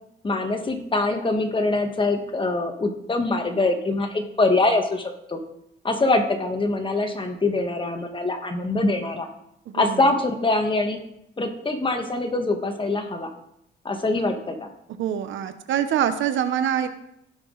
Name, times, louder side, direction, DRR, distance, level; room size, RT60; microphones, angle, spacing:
voice 1, 0.2-5.4 5.8-9.3 9.7-11.0 11.4-13.3 13.8-14.7, left 2 dB, 25° left, 5 dB, 1.5 m, -24 dB
voice 2, 9.7-10.1 15.0-16.9, right 9 dB, 75° right, 11 dB, 0.9 m, -25 dB
16.0 x 6.1 x 3.9 m, 0.78 s
cardioid pair, 90°, 20 cm